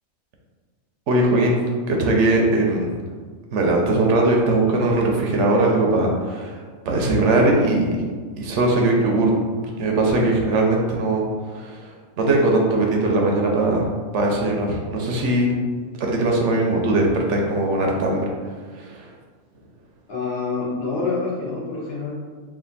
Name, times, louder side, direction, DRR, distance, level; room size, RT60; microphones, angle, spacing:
voice 1, 1.1-1.6 1.9-2.9 3.5-8.0 8.4-9.3 9.8-11.2 11.5-11.9 12.2-13.8 14.1-15.5 16.0-18.3 18.8-19.1, right 2 dB, 75° right, 0 dB, 1.0 m, -20 dB
voice 2, 20.1-22.1, left 4 dB, 55° left, -7 dB, 1.3 m, -26 dB
3.3 x 2.5 x 3.9 m, 1.5 s
omnidirectional pair, 1.3 m